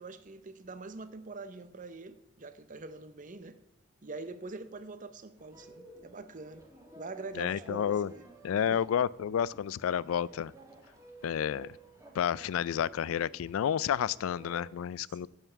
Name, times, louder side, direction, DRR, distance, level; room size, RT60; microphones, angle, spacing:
voice 1, 0.0-3.6 4.0-6.7 7.0-8.2 8.6-8.8 15.0-15.3, right 3 dB, 40° right, 0.7 m, -44 dB
sound 1, 5.4-14.8, right 2 dB, 15° right, 1.7 m, -55 dB
voice 2, 7.4-8.1 8.4-10.5 11.2-11.7 12.1-15.3, left 9 dB, 85° left, 0.3 m, -30 dB
9.3 x 5.6 x 8.1 m
head